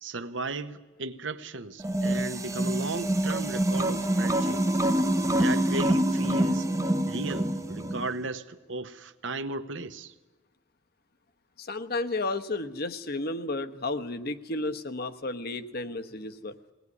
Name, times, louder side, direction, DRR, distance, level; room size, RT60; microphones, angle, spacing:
voice 1, 0.0-4.7 5.2-6.7 7.0-10.1, right 3 dB, 70° right, 1.1 m, -35 dB
sound 1, 1.8-8.1, right 1 dB, 15° right, 0.8 m, -26 dB
voice 2, 11.6-16.5, left 2 dB, 55° left, 1.1 m, -32 dB
20.0 x 18.5 x 9.7 m
head